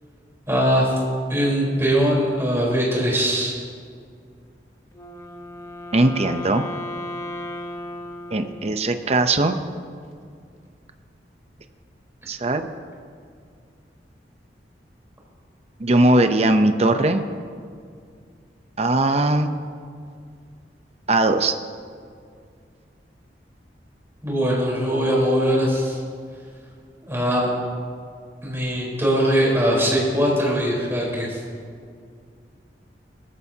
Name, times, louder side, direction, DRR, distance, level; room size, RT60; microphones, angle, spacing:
voice 1, 0.5-0.9 1.3-3.5 24.2-26.0 27.1-27.5 28.4-31.4, equal, 15° right, -5 dB, 4.0 m, -21 dB
Wind instrument woodwind instrument, 4.9-9.2, left 1 dB, 20° left, 1.0 m, -35 dB
voice 2, 5.9-6.6 8.3-9.6 12.3-12.7 15.8-17.2 18.8-19.5 21.1-21.5, right 2 dB, 35° right, 7 dB, 0.7 m, -19 dB
20.5 x 14.0 x 2.8 m, 2.2 s
head